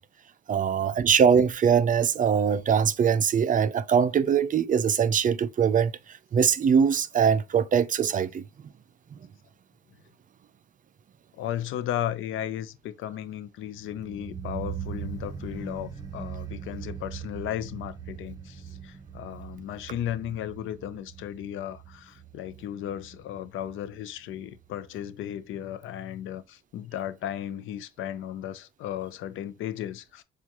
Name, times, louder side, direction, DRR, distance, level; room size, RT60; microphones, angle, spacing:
voice 1, 0.5-5.9 6.3-8.4, right 7 dB, 40° right, 0.5 m, -22 dB
voice 2, 11.3-30.2, left 11 dB, 80° left, 0.6 m, -35 dB
sound 1, 13.7-24.7 24.9-25.0, right 7 dB, 20° right, 1.2 m, -40 dB
7.0 x 2.4 x 2.9 m
cardioid pair, 90°, 20 cm